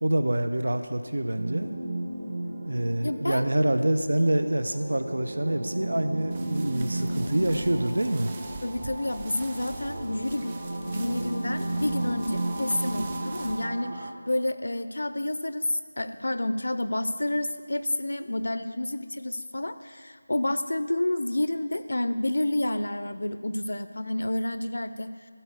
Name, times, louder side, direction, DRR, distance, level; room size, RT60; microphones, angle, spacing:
voice 1, 0.0-1.7 2.6-8.3, right 1 dB, 75° right, 9 dB, 0.8 m, -26 dB
sound 1, 1.4-14.1, right 1 dB, 40° right, 1.1 m, -34 dB
voice 2, 3.0-3.4 8.6-10.6 10.9-25.1, left 1 dB, 70° left, 11 dB, 0.6 m, -29 dB
sound 2, 5.2-12.1, right 2 dB, 60° right, 2.1 m, -47 dB
sound 3, 6.3-13.6, right 3 dB, 20° right, 0.4 m, -45 dB
12.5 x 4.4 x 8.1 m, 2.1 s
figure-of-eight pair, 175°, 0 cm